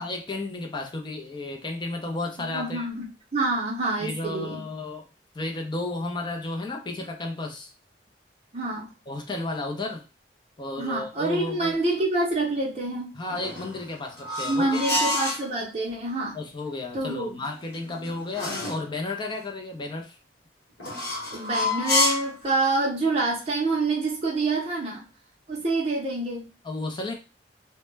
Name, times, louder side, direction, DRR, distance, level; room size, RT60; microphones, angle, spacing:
voice 1, 0.0-2.9 4.0-5.1 5.3-7.7 9.1-10.0 10.6-11.8 13.1-15.0 16.3-20.2 26.6-27.1, left 2 dB, 25° left, 0.5 m, -33 dB
voice 2, 2.5-3.1 3.3-4.6 8.5-8.9 10.8-13.1 14.4-16.4 16.9-17.4 21.3-25.0 25.5-26.5, right 2 dB, 35° right, 0.6 m, -27 dB
sound 1, 13.3-15.5 17.4-18.9 20.8-22.4, left 2 dB, 65° left, 1.1 m, -28 dB
2.1 x 2.0 x 3.1 m
head